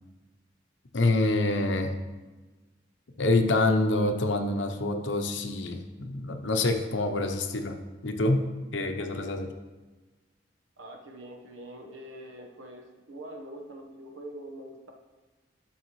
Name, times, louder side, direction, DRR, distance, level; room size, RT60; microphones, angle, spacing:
voice 1, 0.9-2.0 3.2-7.8 8.0-8.4 8.7-9.5, left 2 dB, 70° left, 6 dB, 0.8 m, -26 dB
voice 2, 10.8-14.9, right 1 dB, 85° right, 3 dB, 1.2 m, -44 dB
11.5 x 6.3 x 3.1 m, 1.2 s
head